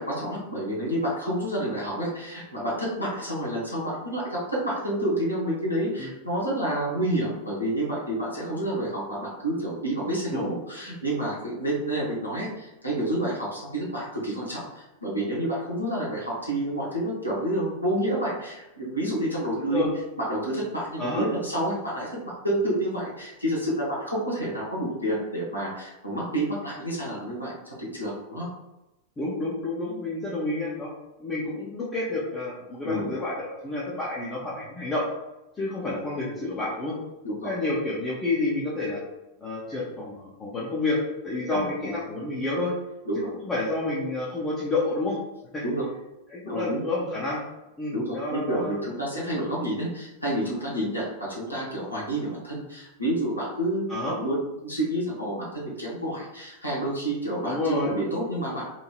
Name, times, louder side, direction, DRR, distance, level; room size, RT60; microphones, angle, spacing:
voice 1, 0.0-19.8 20.2-22.2 22.4-27.5 27.8-28.5 32.8-33.1 37.2-37.5 41.5-41.9 43.1-43.3 45.6-45.8 46.4-46.8 47.9-54.4 54.6-58.6, right 1 dB, 90° left, -6 dB, 0.8 m, -29 dB
voice 2, 29.2-30.9 31.2-35.1 35.6-37.0 37.4-39.0 39.4-42.7 43.4-45.2 45.5-45.7 46.3-47.4 47.8-48.8 53.9-54.2 57.4-57.9, left 2 dB, 20° left, -6 dB, 0.6 m, -29 dB
3.0 x 2.7 x 2.2 m, 0.97 s
figure-of-eight pair, 90°, 0 cm